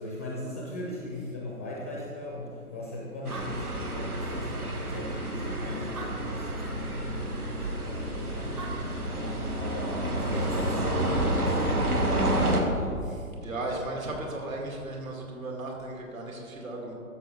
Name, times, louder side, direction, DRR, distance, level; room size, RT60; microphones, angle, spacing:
voice 1, 0.0-8.7 9.1-12.9, left 1 dB, 10° left, -4 dB, 0.4 m, -39 dB
Animal, 2.9-3.0 3.1-4.6 5.2-5.3 5.8-6.8 8.3-8.4 8.6-9.5, right 3 dB, 20° right, 0.7 m, -43 dB
sound 1, 3.3-12.6, right 1 dB, 85° right, 1.4 m, -29 dB
voice 2, 13.0-16.9, right 2 dB, 65° right, -1 dB, 2.3 m, -36 dB
12.5 x 7.0 x 3.2 m, 2.4 s
figure-of-eight pair, 125°, 44 cm